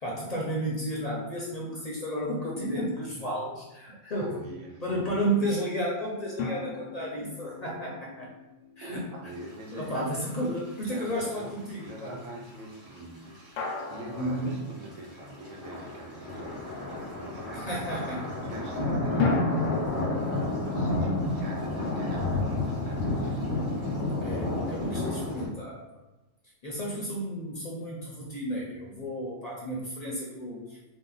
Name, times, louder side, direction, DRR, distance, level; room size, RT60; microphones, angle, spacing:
voice 1, 0.0-4.4 4.8-8.3 8.8-9.1 9.7-12.2 14.1-14.6 17.5-18.4 24.2-26.0 26.6-30.8, equal, 45° left, -4 dB, 0.6 m, -32 dB
voice 2, 4.2-5.5 8.8-10.0 10.3-18.0 18.4-23.4, right 1 dB, 85° right, 0 dB, 1.0 m, -44 dB
sound 1, 6.4-9.7 13.6-15.6 19.2-22.3, left 4 dB, 80° left, 0.9 m, -36 dB
sound 2, 10.2-10.3 10.6-10.7 11.3-11.9 12.6-12.7 12.9-13.0 13.4-14.4 14.9-25.5, left 2 dB, 20° right, 1.1 m, -30 dB
2.9 x 2.0 x 3.8 m, 1.0 s
omnidirectional pair, 1.3 m